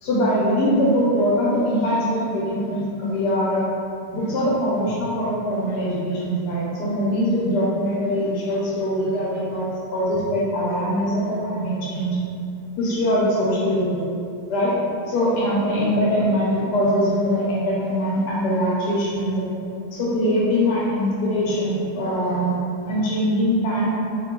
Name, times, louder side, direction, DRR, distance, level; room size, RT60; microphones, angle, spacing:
voice 1, 0.0-3.6 4.1-12.2 12.8-14.0 14.5-14.8 15.1-19.4 19.9-22.6 22.8-23.9, equal, 80° left, -6 dB, 1.2 m, -22 dB
3.0 x 2.2 x 3.6 m, 2.5 s
omnidirectional pair, 1.8 m